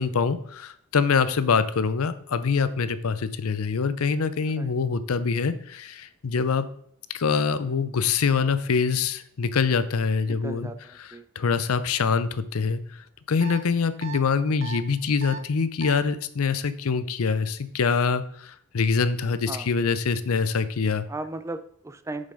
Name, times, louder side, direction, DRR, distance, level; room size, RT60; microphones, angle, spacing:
voice 1, 0.0-6.6 7.1-10.7 11.0-11.1 11.4-12.8 13.3-21.1, left 5 dB, 75° left, 13 dB, 0.6 m, -24 dB
voice 2, 10.3-11.2 19.5-19.7 21.1-22.3, right 2 dB, 15° right, 9 dB, 0.3 m, -36 dB
sound 1, 13.4-13.6 14.0-14.2 14.6-14.8 15.2-15.4 15.8-16.0, right 6 dB, 60° right, 0.7 m, -36 dB
7.0 x 5.3 x 5.3 m, 0.67 s
head